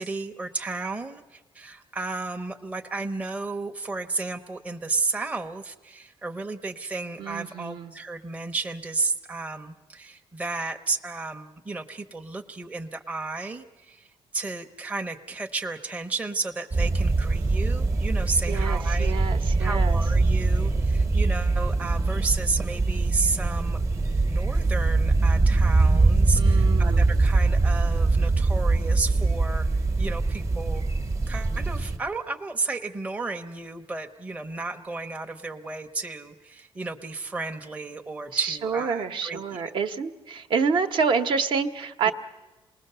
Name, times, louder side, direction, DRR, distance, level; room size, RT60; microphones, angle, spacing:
voice 1, 0.0-19.2 19.6-23.8 24.2-30.9 31.3-39.7 42.1-42.2, right 3 dB, 15° right, 4 dB, 0.7 m, -33 dB
voice 2, 7.2-7.9 18.5-20.0 26.3-27.1 38.3-42.1, right 5 dB, 55° right, 8 dB, 1.0 m, -28 dB
sound 1, 16.7-32.0, right 3 dB, 30° right, 1.1 m, -22 dB
27.5 x 19.5 x 6.8 m, 1.2 s
cardioid pair, 170°, 10 cm